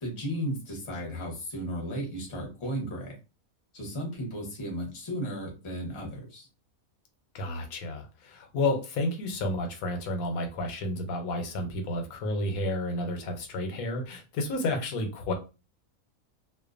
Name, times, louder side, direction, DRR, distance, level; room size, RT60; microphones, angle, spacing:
voice 1, 0.0-3.1 3.7-6.5, equal, 25° left, 0.7 m, -35 dB
voice 2, 7.3-15.3, left 2 dB, 90° left, 1.1 m, -31 dB
2.5 x 2.1 x 2.4 m
omnidirectional pair, 1.5 m